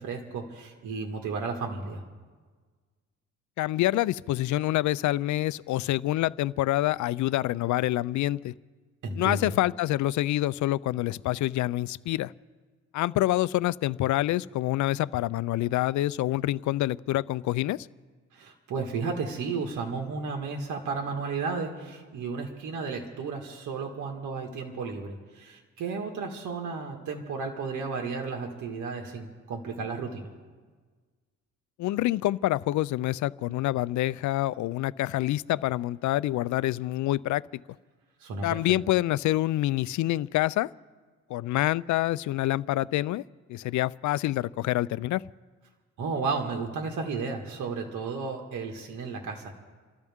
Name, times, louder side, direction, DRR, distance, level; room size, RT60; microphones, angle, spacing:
voice 1, 0.0-2.0 9.0-9.5 18.3-30.3 38.2-38.6 46.0-49.5, right 4 dB, 80° right, 2 dB, 1.8 m, -33 dB
voice 2, 3.6-8.5 9.2-12.3 12.9-17.9 31.8-37.6 38.4-40.7 41.3-43.2 43.5-45.2, left 15 dB, 70° left, 20 dB, 0.5 m, -27 dB
29.0 x 13.5 x 3.6 m, 1.4 s
cardioid pair, 90°, 30 cm